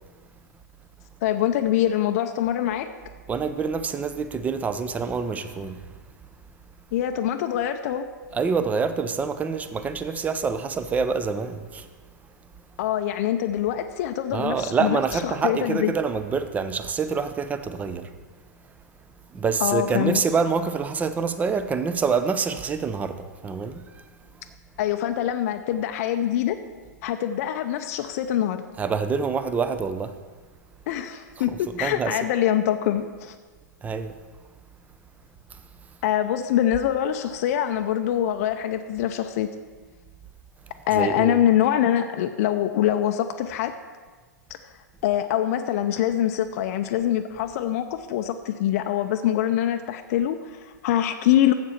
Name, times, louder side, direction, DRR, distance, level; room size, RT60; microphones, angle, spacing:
voice 1, 1.2-2.9 6.9-8.1 12.8-15.9 19.6-20.2 24.8-26.6 27.0-28.7 30.9-33.4 36.0-39.5 40.9-43.8 45.0-51.5, left 11 dB, 55° left, 0.5 m, -24 dB
voice 2, 3.3-5.8 8.3-11.9 12.6-12.7 14.3-18.1 19.3-24.0 28.8-30.2 31.4-32.2 33.8-34.2 40.9-41.4, right 5 dB, 15° right, 0.6 m, -26 dB
7.5 x 7.3 x 5.7 m
hypercardioid pair, 110°, 10 cm